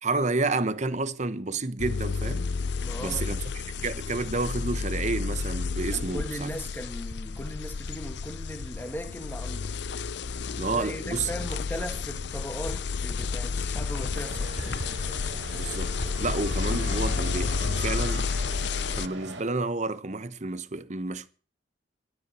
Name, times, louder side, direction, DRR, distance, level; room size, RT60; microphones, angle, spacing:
voice 1, 0.0-2.5 3.0-6.5 10.6-11.3 15.5-18.3 18.9-21.3, right 3 dB, 40° right, 0.9 m, -30 dB
sound 1, 1.8-19.1, left 5 dB, 60° left, 0.6 m, -31 dB
voice 2, 2.8-3.3 5.9-9.7 10.7-14.8, equal, 10° left, 2.1 m, -38 dB
sound 2, 12.6-13.0 14.6-15.0 16.0-16.5 17.4-17.8 18.4-19.0, equal, 45° left, 3.5 m, -41 dB
sound 3, 14.1-19.4, right 2 dB, 75° right, 3.9 m, -41 dB
12.5 x 10.5 x 6.8 m
head